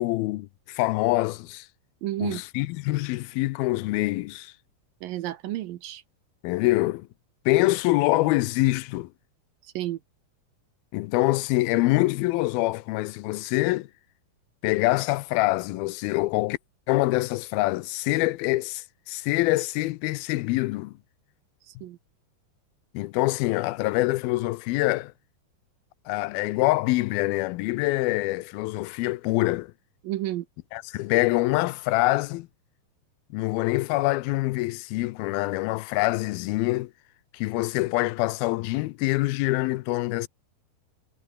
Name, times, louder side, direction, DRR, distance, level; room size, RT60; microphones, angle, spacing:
voice 1, 0.0-1.7 2.2-4.5 6.4-7.1 7.5-9.1 10.9-13.9 14.6-16.6 16.9-20.9 22.9-25.1 26.1-29.7 30.7-32.5 33.3-36.9 37.3-40.3, left 19 dB, 80° left, 2.3 m, -25 dB
voice 2, 2.0-2.4 5.0-6.0 9.8-10.0 21.7-22.0 30.0-30.4, right 15 dB, 70° right, 2.3 m, -31 dB
omnidirectional pair, 4.7 m